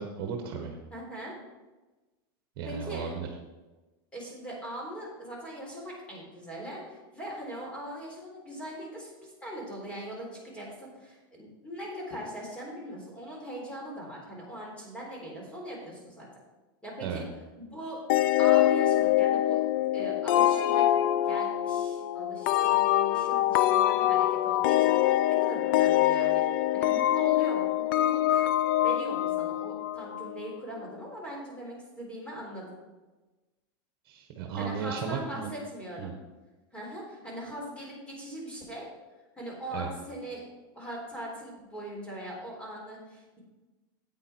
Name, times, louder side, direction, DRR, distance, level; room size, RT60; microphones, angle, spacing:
voice 1, 0.0-0.8 2.6-3.3 17.0-17.2 34.1-35.5 36.0-36.1 39.7-39.9, right 6 dB, 50° right, 3 dB, 1.4 m, -34 dB
voice 2, 0.9-1.4 2.6-3.1 4.1-16.3 16.8-17.2 17.6-18.0 18.4-19.6 19.9-20.9 21.2-28.5 28.8-32.8 34.6-36.1 36.7-38.9 39.4-40.4 40.7-43.4, right 1 dB, 10° left, -3 dB, 3.7 m, -40 dB
sound 1, 18.1-30.5, left 13 dB, 65° left, 0.5 m, -24 dB
9.5 x 8.4 x 4.5 m, 1.2 s
supercardioid pair, 140°, 12 cm